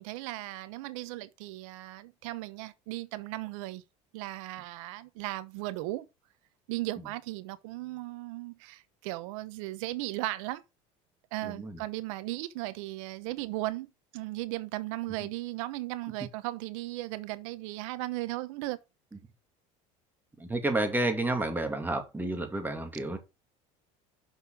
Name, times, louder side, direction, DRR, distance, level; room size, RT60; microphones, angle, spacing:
voice 1, 0.0-3.8 4.1-6.1 6.7-10.6 11.3-13.9 14.1-18.8, right 18 dB, 75° right, 1.0 m, -36 dB
voice 2, 11.4-11.8 15.2-15.3 20.4-23.2, right 2 dB, 10° right, 2.6 m, -30 dB
6.6 x 5.5 x 6.3 m
supercardioid pair, 95°, 17 cm